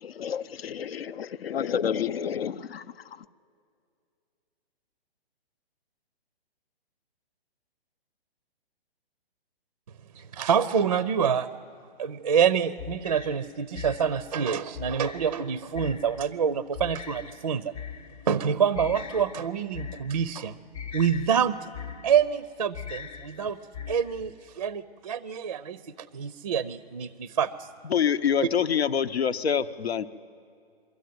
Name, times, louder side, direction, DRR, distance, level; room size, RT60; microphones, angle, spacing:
voice 1, 0.0-2.8, left 8 dB, 70° left, 0.7 m, -31 dB
voice 2, 10.2-11.5 12.0-17.7 18.3-20.5 20.9-21.7 22.0-23.6 23.9-25.8 26.1-27.5 28.4-28.5, right 7 dB, 35° right, 0.4 m, -26 dB
sound 1, 12.8-24.5, left 7 dB, 35° left, 0.8 m, -42 dB
voice 3, 27.9-30.1, left 8 dB, 90° left, 1.0 m, -25 dB
23.5 x 13.0 x 9.4 m
hypercardioid pair, 165°, 31 cm